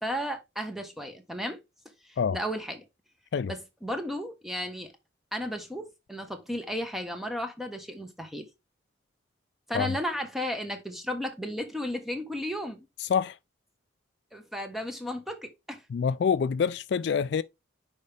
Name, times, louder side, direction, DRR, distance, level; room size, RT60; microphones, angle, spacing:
voice 1, 0.0-1.6 2.0-2.8 3.5-4.9 5.3-8.5 9.7-12.9 14.3-15.8, equal, ahead, 1.1 m, -34 dB
voice 2, 13.0-13.4 15.9-17.4, left 6 dB, 60° left, 0.3 m, -26 dB
6.4 x 5.0 x 3.4 m
head